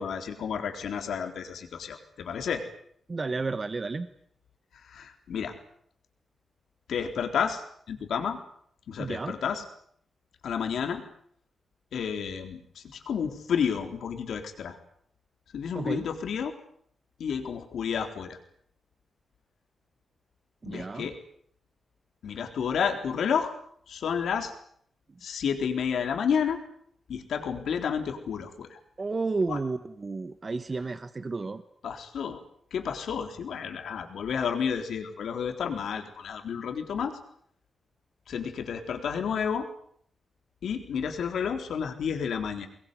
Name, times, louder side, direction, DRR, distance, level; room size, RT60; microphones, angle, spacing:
voice 1, 0.0-2.6 4.9-5.5 6.9-8.4 8.9-9.6 10.4-11.0 11.9-14.8 15.5-16.5 17.2-18.4 20.7-21.2 22.2-23.5 23.9-24.5 25.2-26.6 27.1-28.8 29.5-29.6 31.8-32.4 32.7-37.2 38.3-39.7 40.6-42.7, left 7 dB, 85° left, 6 dB, 3.9 m, -31 dB
voice 2, 3.1-4.1 9.0-9.3 15.7-16.1 20.6-21.1 25.1-25.2 29.0-31.6, right 3 dB, 30° right, 10 dB, 1.2 m, -32 dB
24.0 x 21.5 x 9.6 m, 0.66 s
wide cardioid pair, 145°, 0 cm